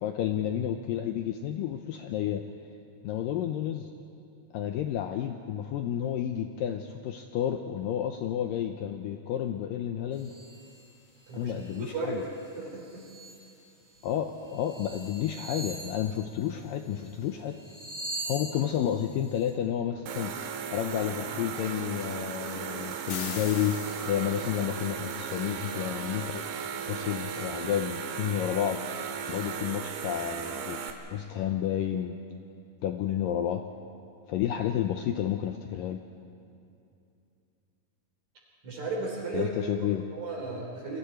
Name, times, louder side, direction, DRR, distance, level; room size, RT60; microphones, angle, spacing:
voice 1, 0.0-2.4 3.0-3.9 4.5-10.3 11.3-12.2 14.0-17.6 18.3-20.4 20.7-23.8 24.1-26.5 26.9-28.8 29.3-30.8 31.1-32.2 32.8-33.6 34.3-36.0 39.3-40.0, left 10 dB, 80° left, 5 dB, 2.1 m, -31 dB
sound 1, 10.1-10.8 11.3-11.9 12.2-13.4 14.0-14.1 14.4-17.1 17.4-19.5, right 2 dB, 10° right, 3.4 m, -42 dB
voice 2, 11.3-12.3 12.6-13.0 38.6-39.5 39.8-41.0, right 3 dB, 50° right, -1 dB, 4.8 m, -35 dB
sound 2, 20.1-30.9, right 7 dB, 90° right, 3.4 m, -36 dB
sound 3, 23.1-24.6, left 8 dB, 65° left, 2.0 m, -40 dB
29.0 x 23.0 x 4.5 m, 2.6 s
omnidirectional pair, 4.7 m